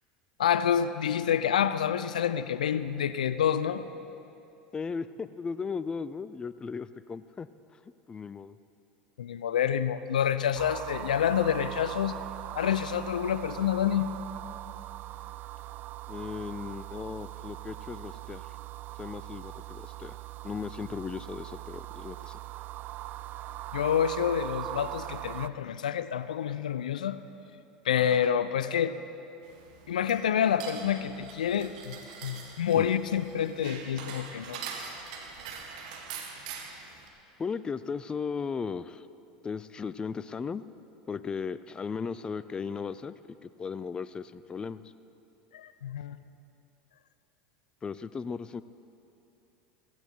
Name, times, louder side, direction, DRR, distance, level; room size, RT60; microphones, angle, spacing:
voice 1, 0.4-3.8 9.2-12.2 12.5-14.1 23.7-27.2 27.9-29.0 29.9-32.0 32.2-34.6 45.5-46.2, left 9 dB, 90° left, 13 dB, 0.5 m, -28 dB
voice 2, 4.7-7.8 8.1-8.6 16.1-18.5 19.0-20.2 20.4-22.4 32.8-32.9 37.4-39.1 39.4-40.6 41.1-44.8 47.8-48.6, left 5 dB, 20° left, 15 dB, 0.4 m, -36 dB
sound 1, 10.6-25.5, right 15 dB, 50° right, 0.4 m, -41 dB
sound 2, 29.4-37.1, right 5 dB, 70° right, 1.6 m, -43 dB
15.5 x 15.5 x 4.5 m, 2.8 s
hypercardioid pair, 95°, 4 cm